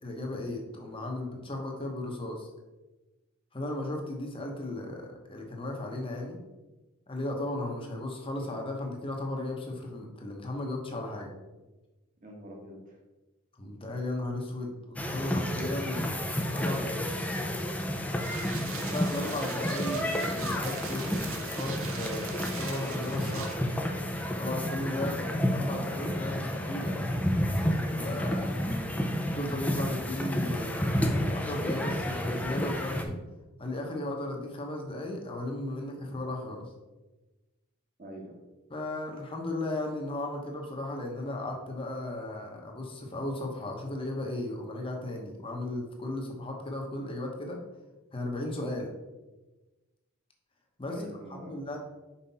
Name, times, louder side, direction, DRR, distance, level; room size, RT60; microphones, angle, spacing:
voice 1, 0.0-2.5 3.5-6.4 7.1-11.3 13.6-16.2 16.5-17.1 18.6-20.1 20.3-23.6 24.4-27.0 27.6-28.7 29.3-33.2 33.6-36.7 38.7-47.6 48.1-48.9 50.8-51.8, left 1 dB, 25° left, 1 dB, 1.0 m, -36 dB
voice 2, 12.2-13.0 18.6-18.9 38.0-38.4 50.9-51.6, equal, 40° right, -1 dB, 1.4 m, -45 dB
sound 1, 15.0-33.1, equal, 5° left, 0.5 m, -31 dB
sound 2, 18.2-23.6, right 6 dB, 80° right, 0.8 m, -42 dB
5.6 x 5.0 x 4.1 m, 1.1 s
head